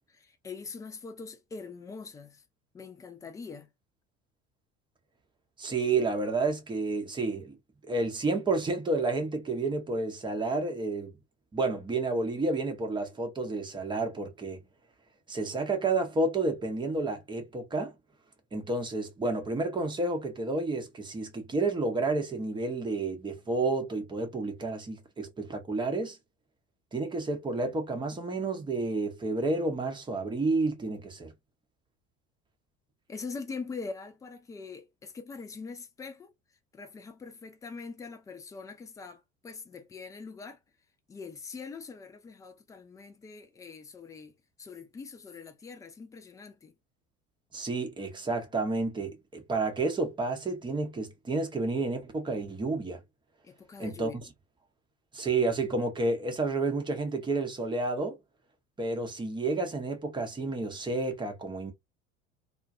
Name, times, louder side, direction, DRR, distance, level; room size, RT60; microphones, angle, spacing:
voice 1, 0.2-2.4 2.7-3.7 33.1-36.3 36.7-40.6 41.1-46.7 53.4-54.2, left 4 dB, 10° left, 0.3 m, -43 dB
voice 2, 5.6-7.6 7.9-11.2 11.5-14.6 15.3-17.9 18.5-26.2 26.9-31.3 47.5-53.0 53.8-54.1 55.1-58.2 58.8-61.7, right 3 dB, 10° right, 0.7 m, -30 dB
2.3 x 2.2 x 2.6 m
figure-of-eight pair, 65°, 39 cm